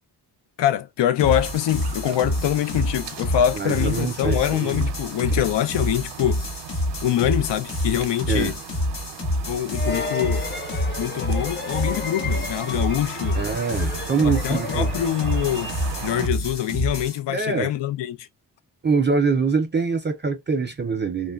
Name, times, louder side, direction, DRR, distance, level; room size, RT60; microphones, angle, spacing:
voice 1, 0.6-6.4 7.0-8.6 9.5-10.4 11.0-13.4 14.2-15.7 16.0-18.3, left 11 dB, 85° left, 0.5 m, -24 dB
sound 1, 1.2-17.2, left 1 dB, 50° left, 1.2 m, -28 dB
sound 2, 1.2-16.3, right 10 dB, 80° right, 0.6 m, -39 dB
voice 2, 3.6-4.9 5.3-5.4 8.3-8.5 13.3-14.9 17.3-17.7 18.8-21.3, right 5 dB, 30° right, 0.4 m, -24 dB
sound 3, 9.7-16.2, left 3 dB, 25° left, 0.5 m, -34 dB
3.0 x 2.2 x 2.2 m
wide cardioid pair, 115°, 41 cm